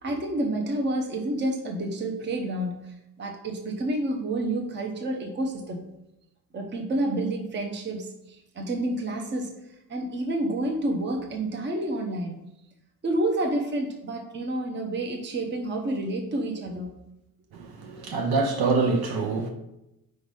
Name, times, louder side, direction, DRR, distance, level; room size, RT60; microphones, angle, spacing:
voice 1, 0.0-2.8 3.2-5.8 6.5-9.5 9.9-12.3 13.0-16.9, right 1 dB, 30° right, 0.8 m, -29 dB
voice 2, 17.5-19.5, right 4 dB, 75° right, 1.1 m, -25 dB
5.0 x 3.9 x 5.3 m
cardioid pair, 155°, 38 cm